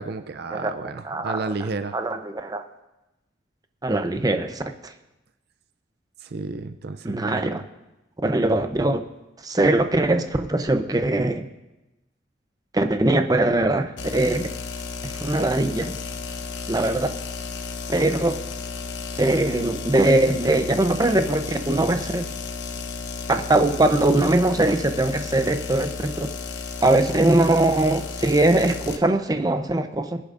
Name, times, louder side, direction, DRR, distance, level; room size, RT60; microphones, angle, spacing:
voice 1, 0.0-2.0 6.2-7.6, right 3 dB, 60° right, 10 dB, 0.5 m, -32 dB
voice 2, 1.0-1.4 1.9-2.6 3.8-4.9 7.0-7.6 8.2-9.0 9.4-11.5 12.7-14.5 15.2-16.0 16.7-17.1 17.9-18.4 19.2-22.3 23.3-26.3 26.8-30.2, right 2 dB, 20° right, 7 dB, 0.7 m, -21 dB
sound 1, 14.0-29.0, left 4 dB, 70° left, 1.0 m, -33 dB
22.0 x 10.0 x 2.6 m, 0.98 s
head